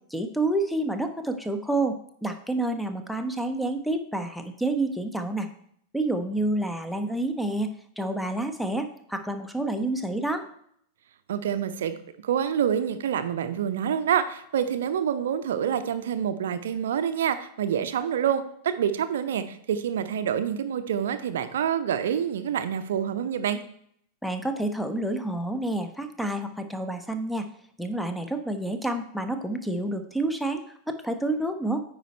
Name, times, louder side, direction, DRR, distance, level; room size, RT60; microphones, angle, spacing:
voice 1, 0.1-5.5 5.9-7.7 8.0-10.4 24.2-27.5 27.8-31.8, right 2 dB, ahead, 7 dB, 0.9 m, -29 dB
voice 2, 11.3-12.0 12.2-23.6, right 8 dB, 60° right, 10 dB, 0.6 m, -27 dB
9.2 x 4.9 x 4.3 m, 0.67 s
figure-of-eight pair, 90°, 0 cm